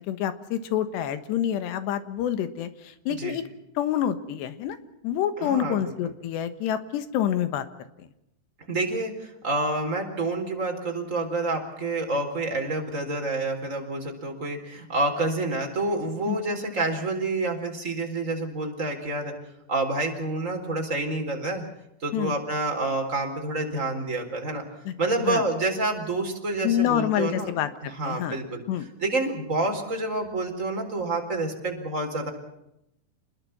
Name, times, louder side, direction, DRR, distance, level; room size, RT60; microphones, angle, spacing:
voice 1, 0.1-2.7 3.1-3.4 3.8-4.8 5.0-7.7 8.0-8.1 16.3-16.4 22.1-22.3 24.9-25.0 25.2-25.4 26.6-28.4 28.7-28.9, left 10 dB, 90° left, 11 dB, 3.6 m, -27 dB
voice 2, 5.4-5.9 8.7-9.1 9.4-19.3 19.7-21.6 22.0-24.6 25.0-27.5 27.8-28.6 29.0-32.3, right 2 dB, 20° right, 3 dB, 4.0 m, -28 dB
28.0 x 21.0 x 5.9 m, 0.82 s
omnidirectional pair, 4.8 m